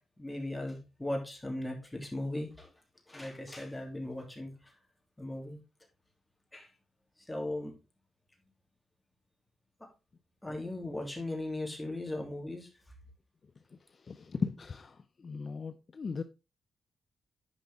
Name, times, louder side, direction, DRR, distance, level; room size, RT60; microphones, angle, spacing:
voice 1, 0.2-2.7 3.1-4.5 5.2-5.6 6.5-6.7 7.3-7.7 10.4-12.7, left 1 dB, 10° left, 2.8 m, -37 dB
voice 2, 13.9-16.2, left 5 dB, 45° left, 0.5 m, -37 dB
10.5 x 5.3 x 3.5 m
cardioid pair, 100°, 0 cm